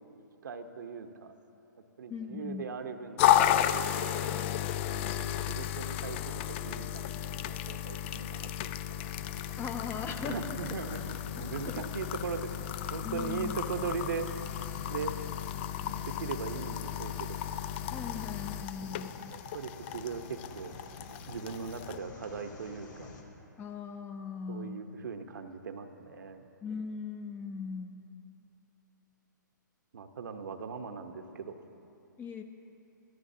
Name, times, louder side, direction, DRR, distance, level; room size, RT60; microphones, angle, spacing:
voice 1, 0.4-1.3 2.0-3.8 4.9-8.5 8.9-9.1 10.2-14.4 14.9-15.2 16.0-17.4 19.3-20.7 21.3-23.1 24.5-26.5 29.9-31.6, right 5 dB, 70° right, 6 dB, 1.0 m, -39 dB
voice 2, 2.1-2.7 9.6-10.5 11.6-11.8 13.0-13.6 17.9-19.3 23.6-24.8 26.6-28.0 32.2-32.4, left 5 dB, 20° left, 7 dB, 0.8 m, -39 dB
sound 1, 3.2-22.0, left 11 dB, 35° left, 0.4 m, -33 dB
sound 2, 8.9-23.2, left 3 dB, 70° left, 2.5 m, -49 dB
23.0 x 13.5 x 2.8 m, 2.8 s
hypercardioid pair, 130°, 11 cm